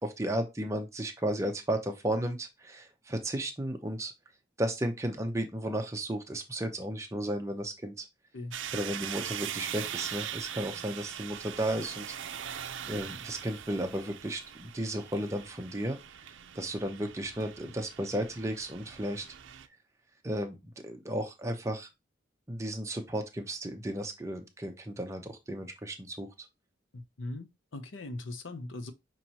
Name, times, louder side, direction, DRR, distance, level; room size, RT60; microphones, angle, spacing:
voice 1, 0.0-4.1 4.6-8.1 8.7-12.1 12.9-16.0 16.5-19.2 20.2-21.9 22.5-26.3, right 1 dB, 15° right, 0.7 m, -34 dB
sound 1, 8.5-19.7, right 9 dB, 75° right, 0.5 m, -41 dB
voice 2, 26.9-27.5 27.7-28.9, left 2 dB, 75° left, 0.7 m, -39 dB
5.9 x 3.1 x 2.8 m
head